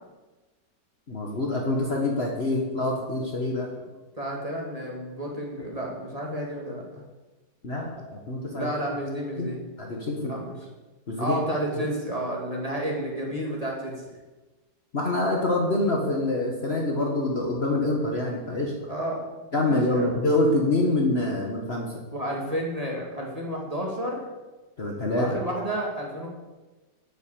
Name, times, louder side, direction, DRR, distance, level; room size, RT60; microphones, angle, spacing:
voice 1, 1.1-3.7 7.6-8.7 9.4-9.5 9.8-10.3 11.1-11.4 11.7-11.8 14.9-18.9 19.5-21.9 24.8-25.4, left 2 dB, 40° left, 0 dB, 1.5 m, -26 dB
voice 2, 4.1-7.0 8.5-9.6 10.2-10.6 11.2-13.9 18.9-19.2 19.6-20.2 22.1-24.3 25.1-26.3, right 1 dB, 20° right, -2 dB, 2.1 m, -31 dB
8.8 x 8.4 x 6.8 m, 1.2 s
omnidirectional pair, 1.9 m